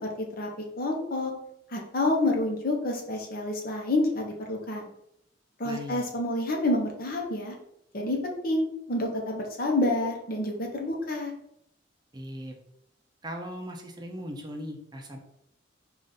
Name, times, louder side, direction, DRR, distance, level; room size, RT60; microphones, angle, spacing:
voice 1, 0.2-0.5 0.8-1.3 1.7-4.9 5.6-7.5 7.9-11.3, left 2 dB, 55° left, 1 dB, 0.9 m, -28 dB
voice 2, 5.6-6.0 12.1-12.5 13.2-15.2, equal, 25° right, 2 dB, 0.6 m, -38 dB
5.0 x 2.5 x 4.0 m, 0.76 s
head